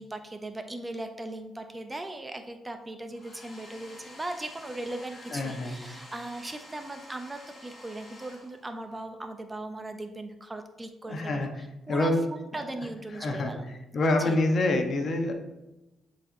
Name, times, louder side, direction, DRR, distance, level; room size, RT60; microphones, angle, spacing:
voice 1, 0.0-11.5 11.9-13.7 14.2-14.4, right 2 dB, 15° right, 6 dB, 0.5 m, -38 dB
Domestic sounds home sounds, 3.1-9.0, left 2 dB, 30° left, 2.0 m, -49 dB
voice 2, 5.3-5.8 11.1-11.5 11.9-12.2 13.1-15.3, left 2 dB, 50° left, 4 dB, 1.0 m, -26 dB
9.8 x 4.2 x 2.7 m, 1.0 s
cardioid pair, 90°, 0 cm